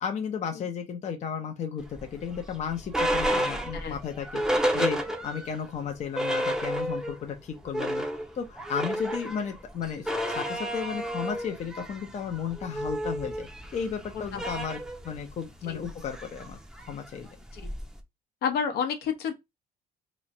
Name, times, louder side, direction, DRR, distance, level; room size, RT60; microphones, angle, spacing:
voice 1, 0.0-4.4 4.7-8.1 8.3-14.8 15.0-16.6 16.9-17.3, left 7 dB, 45° left, 0.7 m, -34 dB
sound 1, 1.9-5.6 5.9-6.0 6.1-7.2 7.5-18.0, equal, 5° right, 0.7 m, -31 dB
voice 2, 18.4-19.3, left 7 dB, 70° left, 0.9 m, -30 dB
3.1 x 2.4 x 4.1 m
cardioid pair, 110°, 17 cm